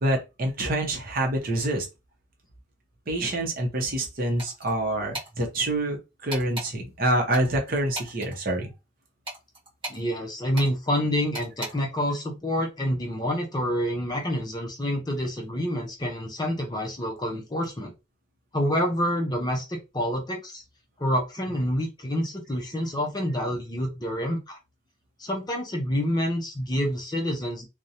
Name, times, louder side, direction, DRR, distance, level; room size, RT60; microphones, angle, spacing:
voice 1, 0.0-1.9 3.1-8.7, right 1 dB, 45° right, 0.7 m, -26 dB
sound 1, 4.4-4.7 5.1-5.3 6.3-6.7 7.3-8.3 9.2-10.0 10.5-10.7 11.3-11.7, right 1 dB, 25° right, 1.2 m, -36 dB
voice 2, 9.9-17.9 18.5-20.6 21.0-24.6 25.2-27.7, equal, 20° left, 0.5 m, -28 dB
2.5 x 2.1 x 2.7 m
head